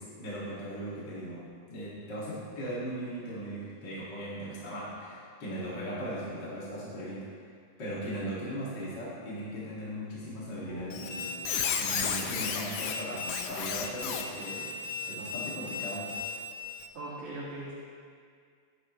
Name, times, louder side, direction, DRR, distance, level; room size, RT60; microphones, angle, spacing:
voice 1, 0.0-7.3 7.8-11.3 11.8-14.7 15.1-16.1, equal, 35° left, -8 dB, 2.8 m, -38 dB
sound 1, 10.4-16.4, right 1 dB, 60° left, 5.4 m, -52 dB
Squeak, 10.9-16.9, left 6 dB, 85° left, 1.4 m, -34 dB
voice 2, 16.9-17.7, right 2 dB, 60° right, -10 dB, 3.5 m, -39 dB
17.5 x 11.5 x 3.3 m, 2.2 s
omnidirectional pair, 3.9 m